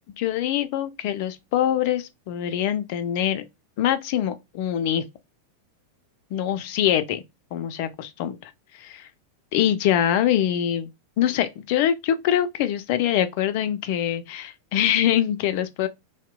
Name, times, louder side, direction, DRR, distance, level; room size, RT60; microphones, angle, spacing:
voice 1, 0.2-3.4 3.8-5.0 6.3-7.2 7.5-9.1 9.5-10.9 11.2-15.9, left 10 dB, 45° left, 0.4 m, -24 dB
2.7 x 2.0 x 2.3 m
figure-of-eight pair, 90°, 0 cm